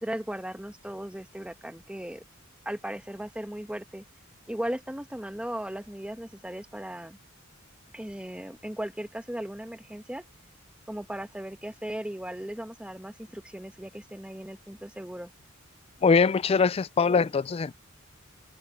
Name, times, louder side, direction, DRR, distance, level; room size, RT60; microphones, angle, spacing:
voice 1, 0.0-2.2 2.6-4.0 4.5-7.2 7.9-10.2 10.9-15.3, right 1 dB, 5° right, 1.3 m, -37 dB
voice 2, 16.0-17.7, left 5 dB, 30° left, 0.3 m, -22 dB
open air
head